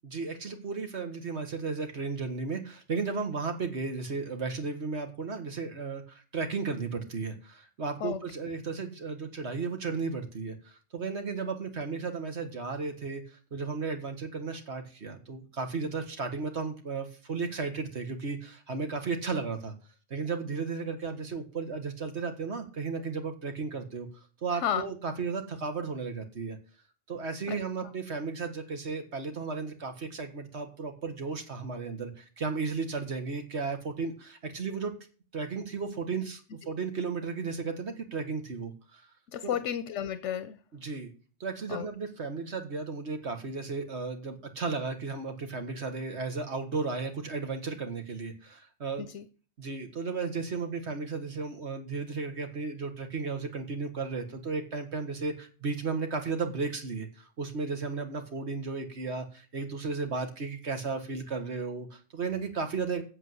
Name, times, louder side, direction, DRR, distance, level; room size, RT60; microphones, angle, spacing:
voice 1, 0.0-19.7 20.1-24.1 24.4-26.6 27.1-34.9 35.3-39.0 39.4-39.6 40.7-41.1 41.4-49.1 49.6-63.0, right 4 dB, 70° right, 6 dB, 1.9 m, -34 dB
voice 2, 39.3-40.6 41.7-41.9 49.0-49.2, left 9 dB, 85° left, 13 dB, 1.0 m, -32 dB
8.3 x 7.4 x 7.8 m, 0.38 s
omnidirectional pair, 1.2 m